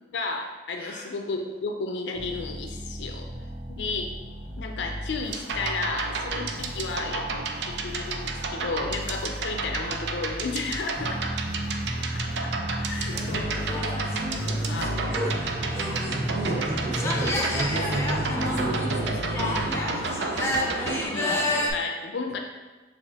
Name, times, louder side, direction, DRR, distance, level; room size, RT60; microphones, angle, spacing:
voice 1, 0.1-3.3 3.7-4.1 4.6-7.3 7.7-11.4 12.1-13.6 14.4-14.9 21.0-22.4, left 3 dB, 70° left, 3 dB, 0.4 m, -33 dB
sound 1, 2.2-19.8, equal, 45° right, 1.0 m, -34 dB
sound 2, 5.2-21.1, right 4 dB, 65° right, 0.4 m, -32 dB
voice 2, 12.9-13.3 14.3-19.7, right 2 dB, 15° right, -8 dB, 1.1 m, -34 dB
sound 3, 13.1-21.7, left 1 dB, 15° left, 0.4 m, -31 dB
6.8 x 2.5 x 2.8 m, 1.2 s
head